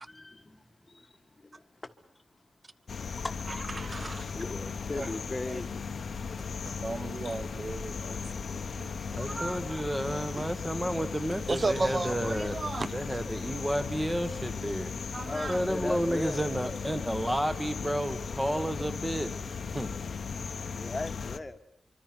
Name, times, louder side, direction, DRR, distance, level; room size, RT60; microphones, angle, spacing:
voice 1, 0.1-1.9 2.9-3.4 4.2-5.7 15.3-16.4 20.7-21.6, left 2 dB, 20° left, 1.4 m, -38 dB
sound 1, 2.9-21.4, left 5 dB, 50° left, 1.1 m, -37 dB
voice 2, 3.8-4.2 5.0-5.1 5.5-5.6 6.6-8.4 8.8-9.7 11.5-12.9 15.1-15.6, right 3 dB, 25° right, 0.9 m, -34 dB
voice 3, 9.1-12.6 12.9-14.9 15.5-19.9, equal, 5° right, 1.2 m, -31 dB
25.5 x 24.5 x 6.0 m
wide cardioid pair, 170°, 0 cm